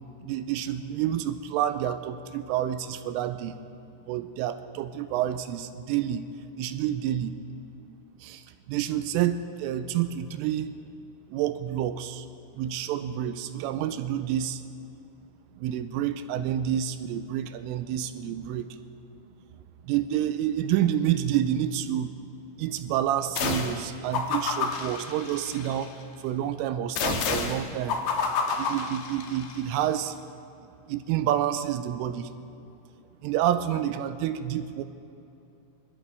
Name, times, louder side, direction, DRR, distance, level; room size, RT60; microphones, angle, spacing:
voice 1, 0.2-3.5 4.1-6.2 6.6-7.3 8.2-10.8 11.3-12.3 12.6-14.6 15.6-18.8 19.8-22.1 22.6-25.9 26.2-28.0 28.6-30.2 30.9-32.3 33.2-34.8, right 11 dB, 85° right, 10 dB, 3.1 m, -28 dB
sound 1, 23.4-23.8 24.1-25.9 27.0-29.6, left 5 dB, 70° left, 2.3 m, -29 dB
27.0 x 13.5 x 3.5 m, 2.8 s
omnidirectional pair, 5.8 m